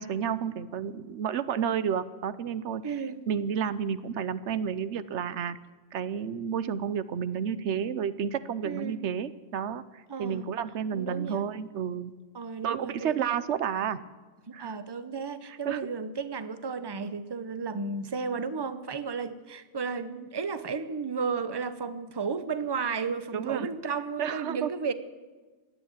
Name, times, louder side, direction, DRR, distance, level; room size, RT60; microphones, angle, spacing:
voice 1, 0.0-3.0 3.3-5.6 5.9-12.1 12.6-14.0 14.5-14.7 15.5-15.8 23.3-23.7 24.2-24.7, right 8 dB, 90° right, 15 dB, 1.0 m, -31 dB
voice 2, 2.8-3.2 8.6-9.0 10.1-10.5 10.9-11.4 12.3-13.2 14.6-24.9, right 5 dB, 25° right, 12 dB, 0.8 m, -33 dB
16.5 x 11.0 x 7.4 m, 1.3 s
omnidirectional pair, 1.2 m